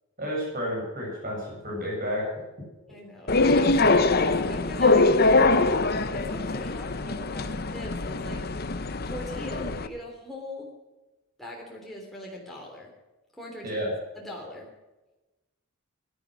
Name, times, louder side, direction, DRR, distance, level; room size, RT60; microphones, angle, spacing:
voice 1, 0.2-2.3 13.6-13.9, equal, 40° right, -3 dB, 7.1 m, -31 dB
voice 2, 2.9-5.7 6.1-8.4 9.0-10.7 11.4-12.9 13.3-13.8 14.1-14.7, left 1 dB, ahead, -3 dB, 3.3 m, -40 dB
sound 1, 3.3-9.9, left 3 dB, 45° left, 0.8 m, -23 dB
16.5 x 11.5 x 6.2 m, 1.1 s
head